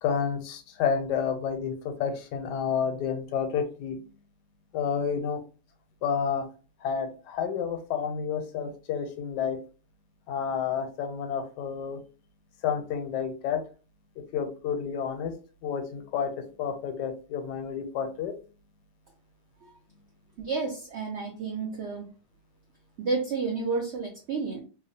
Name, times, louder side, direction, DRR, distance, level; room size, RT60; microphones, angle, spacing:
voice 1, 0.0-4.1 4.7-5.4 6.0-6.5 6.8-9.6 10.3-12.0 12.6-13.6 14.3-15.3 15.6-18.3, left 7 dB, 85° left, 6 dB, 1.2 m, -30 dB
voice 2, 20.4-22.0 23.0-24.6, right 4 dB, 75° right, 0 dB, 0.6 m, -30 dB
2.8 x 2.0 x 2.6 m, 0.36 s
omnidirectional pair, 1.8 m